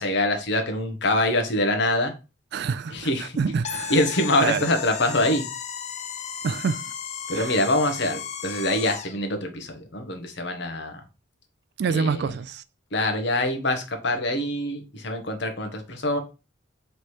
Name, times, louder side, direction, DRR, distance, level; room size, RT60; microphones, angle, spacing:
voice 1, 0.0-2.1 2.9-3.4 3.9-5.5 7.3-11.0 11.9-12.3 12.9-16.2, left 1 dB, 60° left, 0.9 m, -25 dB
voice 2, 2.5-3.9 4.4-4.7 6.4-6.8 7.3-7.5 11.8-12.6, right 5 dB, 55° right, 0.3 m, -27 dB
sound 1, 3.6-9.2, left 7 dB, 35° left, 0.4 m, -34 dB
3.3 x 3.1 x 4.3 m
head